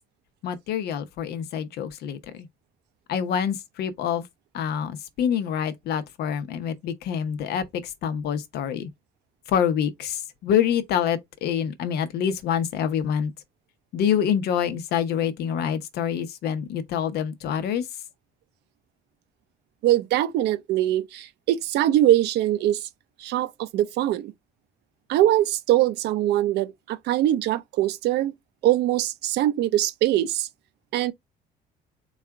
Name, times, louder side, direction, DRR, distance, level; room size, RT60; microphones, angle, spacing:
voice 1, 0.4-2.5 3.1-4.3 4.5-8.9 9.5-13.3 13.9-17.9, left 8 dB, 70° left, 0.8 m, -26 dB
voice 2, 19.8-22.9 23.2-24.3 25.1-28.3 28.6-30.5 30.9-31.1, right 13 dB, 80° right, 0.6 m, -22 dB
4.1 x 2.4 x 4.6 m
cardioid pair, 110°, 17 cm